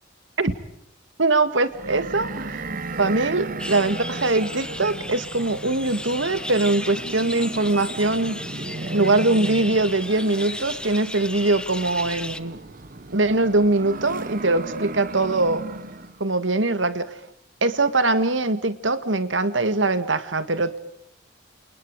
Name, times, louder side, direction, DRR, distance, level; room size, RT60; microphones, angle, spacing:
voice 1, 1.2-8.4 8.9-12.6 13.1-15.7 16.2-17.2 17.6-20.8, right 2 dB, 85° right, 11 dB, 2.1 m, -22 dB
sound 1, 1.7-16.2, right 2 dB, 45° right, 1.2 m, -36 dB
sound 2, 3.6-12.4, left 1 dB, 5° left, 1.0 m, -35 dB
29.0 x 28.5 x 5.0 m, 0.76 s
head